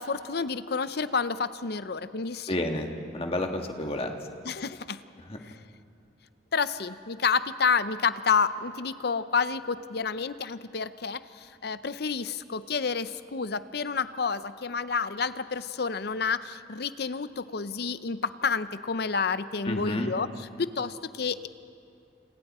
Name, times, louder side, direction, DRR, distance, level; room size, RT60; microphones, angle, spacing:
voice 1, 0.0-2.6 4.4-5.0 5.4-5.6 6.5-21.5, left 5 dB, 60° left, 13 dB, 0.7 m, -29 dB
voice 2, 2.5-4.1 5.3-5.4 19.7-20.1, left 1 dB, 35° left, 3 dB, 1.7 m, -30 dB
30.0 x 28.0 x 4.3 m, 2.5 s
head